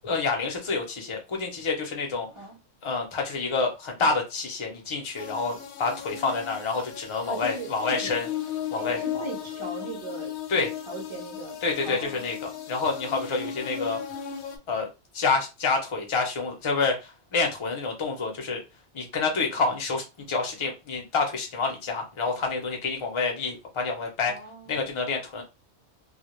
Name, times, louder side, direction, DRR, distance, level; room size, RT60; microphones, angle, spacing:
voice 1, 0.0-2.3 2.8-8.3 8.7-9.3 10.5-10.7 11.6-14.0 14.7-14.9 15.1-18.6 18.9-24.3 24.7-25.4, left 4 dB, 35° left, 0.5 m, -28 dB
sound 1, 5.2-14.6, left 9 dB, 70° left, 0.8 m, -36 dB
voice 2, 7.2-8.1 8.8-10.6 10.9-11.6 11.8-12.3 24.3-24.9, right 2 dB, 30° right, 0.7 m, -38 dB
2.2 x 2.1 x 3.0 m
omnidirectional pair, 1.2 m